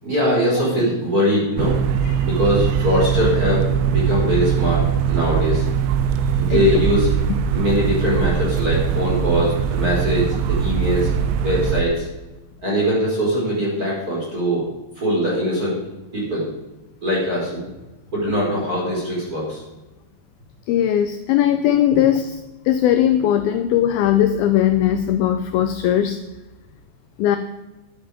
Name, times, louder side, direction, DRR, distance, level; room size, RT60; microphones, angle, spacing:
voice 1, 0.0-1.8 2.2-5.7 6.4-7.1 7.5-11.1 11.4-12.1 12.6-14.7 15.0-15.8 16.1-16.5 17.0-17.7 18.1-19.6, equal, 20° right, -5 dB, 4.9 m, -21 dB
sound 1, 1.6-11.8, right 8 dB, 90° right, 3.1 m, -21 dB
voice 2, 20.7-22.3 22.7-26.2 27.2-27.4, left 11 dB, 85° left, 8 dB, 2.1 m, -18 dB
13.0 x 11.0 x 5.2 m, 1.0 s
omnidirectional pair, 5.1 m